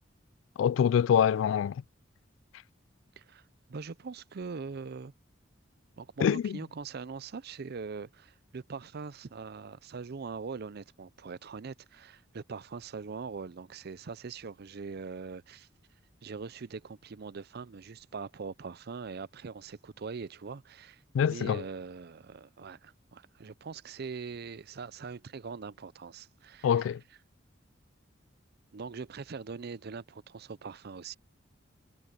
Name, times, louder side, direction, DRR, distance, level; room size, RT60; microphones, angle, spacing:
voice 1, 0.6-1.8 6.2-6.6 21.1-21.6 26.6-27.0, left 8 dB, 90° left, 0.3 m, -25 dB
voice 2, 3.7-5.1 6.0-15.7 16.2-26.9 28.7-31.1, right 5 dB, 55° right, 0.5 m, -42 dB
head